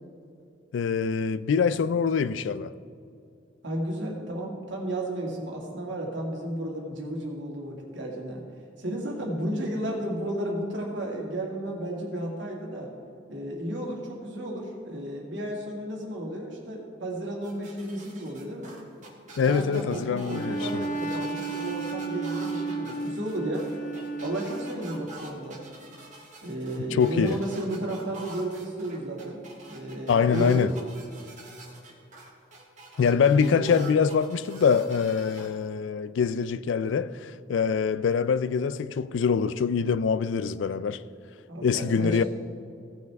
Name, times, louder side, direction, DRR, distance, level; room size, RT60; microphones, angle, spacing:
voice 1, 0.7-2.7 19.4-20.9 26.9-27.4 30.1-30.7 33.0-41.0 41.6-42.2, left 6 dB, 80° left, 0.4 m, -24 dB
voice 2, 3.6-8.4 8.8-12.9 13.3-18.8 19.4-23.7 24.2-25.6 26.4-29.4 29.7-30.6 33.3-33.7 41.5-42.2, right 1 dB, 75° right, 2.2 m, -33 dB
sound 1, 17.4-35.5, right 2 dB, 40° right, 1.9 m, -46 dB
Bowed string instrument, 20.3-25.0, right 3 dB, 40° left, 0.8 m, -33 dB
16.5 x 6.5 x 3.5 m
head